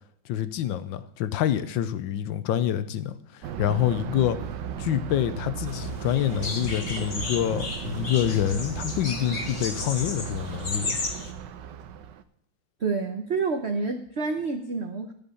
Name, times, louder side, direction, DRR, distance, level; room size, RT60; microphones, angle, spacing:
voice 1, 0.2-4.4 4.8-11.0, left 11 dB, 75° left, 1.4 m, -27 dB
Thunder, 3.4-12.2, right 8 dB, 70° right, 1.3 m, -36 dB
sound 1, 5.7-11.3, left 3 dB, 35° left, 1.5 m, -34 dB
voice 2, 12.8-15.1, right 4 dB, 50° right, 0.8 m, -28 dB
14.0 x 5.4 x 7.0 m
omnidirectional pair, 2.2 m